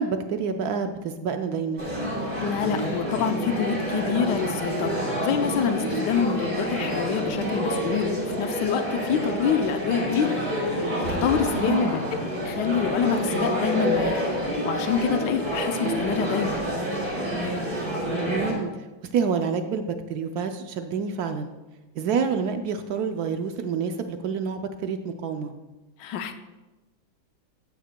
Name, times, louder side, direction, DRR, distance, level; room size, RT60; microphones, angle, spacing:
voice 1, 0.0-1.9 11.5-11.9 18.1-18.7 19.1-21.5 22.0-25.5, right 6 dB, 75° right, 7 dB, 0.8 m, -28 dB
sound 1, 1.8-18.5, equal, 30° right, 3.2 m, -28 dB
voice 2, 2.4-10.4 10.7-12.0 12.4-14.3 14.6-16.6 26.0-26.3, left 7 dB, 70° left, 8 dB, 1.2 m, -26 dB
13.5 x 9.2 x 2.2 m, 1.1 s
omnidirectional pair, 2.2 m